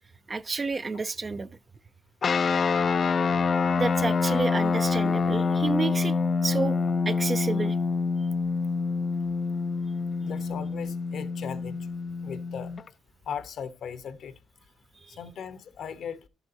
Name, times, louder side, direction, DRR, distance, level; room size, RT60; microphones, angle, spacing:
voice 1, 0.3-1.5 3.8-6.1 6.4-6.8 7.1-7.8 8.2-8.3 15.0-15.2, right 3 dB, 30° right, 0.4 m, -30 dB
sound 1, 2.2-12.9, left 4 dB, 45° left, 0.4 m, -26 dB
voice 2, 10.2-11.8 12.2-12.7 13.3-14.3 15.2-16.2, left 7 dB, 65° left, 0.9 m, -37 dB
11.5 x 8.0 x 2.7 m
cardioid pair, 90°, 0 cm